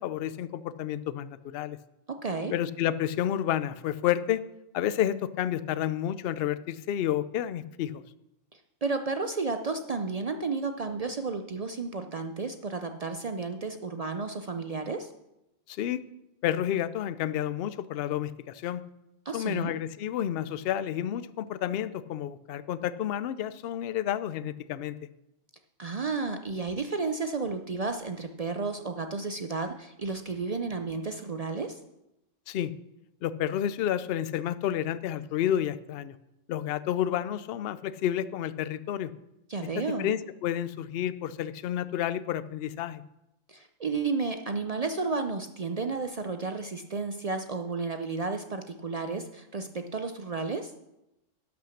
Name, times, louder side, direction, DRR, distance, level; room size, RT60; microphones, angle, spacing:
voice 1, 0.0-1.8 2.5-4.4 4.7-8.0 15.7-16.0 16.4-18.8 19.3-25.0 32.5-32.7 33.2-36.1 36.5-39.1 40.0-43.0, left 11 dB, 65° left, 15 dB, 0.7 m, -30 dB
voice 2, 2.1-2.5 8.5-15.1 19.3-19.7 25.8-31.8 39.5-40.1 43.5-50.7, right 4 dB, 55° right, 7 dB, 0.4 m, -32 dB
11.5 x 5.9 x 6.4 m, 0.90 s
omnidirectional pair, 1.3 m